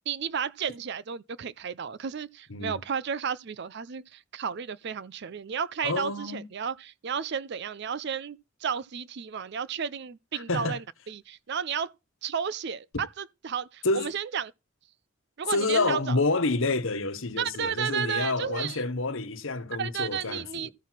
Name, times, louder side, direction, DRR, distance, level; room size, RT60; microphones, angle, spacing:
voice 1, 0.1-11.9 12.2-14.5 15.4-16.2 17.4-18.8 19.8-20.7, right 7 dB, 50° right, 0.4 m, -33 dB
voice 2, 5.8-6.5 10.3-10.8 13.8-14.1 15.5-20.7, left 3 dB, 65° left, 1.2 m, -28 dB
13.5 x 4.6 x 5.7 m
head